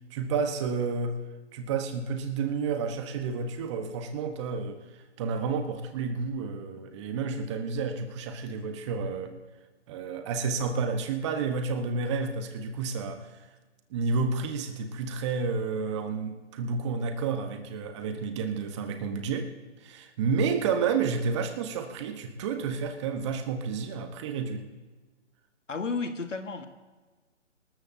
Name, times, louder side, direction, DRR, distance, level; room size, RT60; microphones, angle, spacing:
voice 1, 0.1-1.2 1.5-4.8 5.2-9.3 9.9-13.3 13.9-19.5 19.8-24.7, right 5 dB, 25° right, 7 dB, 1.2 m, -30 dB
voice 2, 25.7-26.6, left 4 dB, 90° left, 7 dB, 1.8 m, -32 dB
26.0 x 13.5 x 2.8 m, 1.3 s
hypercardioid pair, 150°, 36 cm